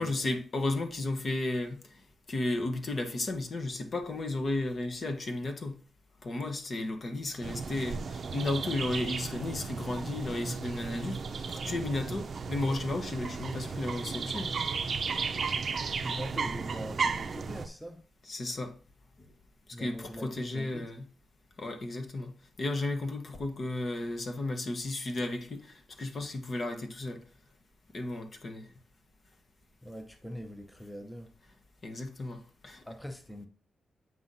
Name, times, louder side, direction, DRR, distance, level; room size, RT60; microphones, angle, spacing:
voice 1, 0.0-2.0 2.3-5.8 6.2-11.2 11.5-14.5 18.3-18.7 19.8-21.1 21.6-22.3 22.6-27.2 27.9-28.7 31.8-32.8, left 2 dB, 40° left, 1.1 m, -34 dB
sound 1, 7.4-17.7, right 5 dB, 50° right, 0.5 m, -34 dB
voice 2, 15.7-18.0 19.7-20.8 29.8-31.3 32.2-32.3 32.8-33.5, equal, 5° left, 0.7 m, -43 dB
7.8 x 5.7 x 2.7 m
cardioid pair, 120°, 0 cm